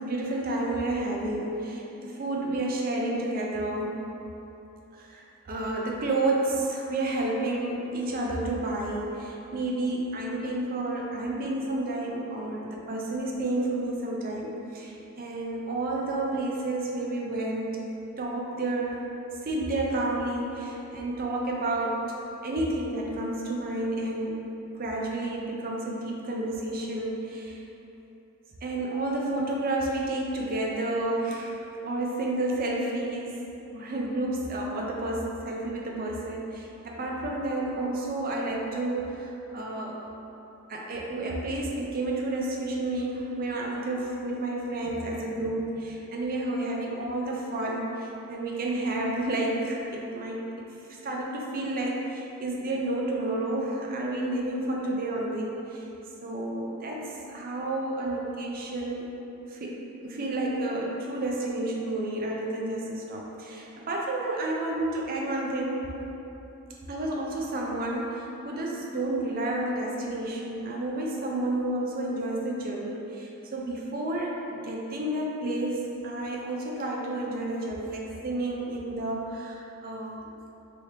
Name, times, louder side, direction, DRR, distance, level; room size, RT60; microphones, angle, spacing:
voice 1, 0.0-3.9 4.9-17.8 18.2-19.0 19.4-22.0 22.4-24.5 24.7-27.6 28.6-33.4 33.7-40.0 40.7-55.9 56.2-59.1 59.5-65.9 66.9-80.3, right 2 dB, 45° right, -2 dB, 0.4 m, -30 dB
3.2 x 3.0 x 2.8 m, 3.0 s
head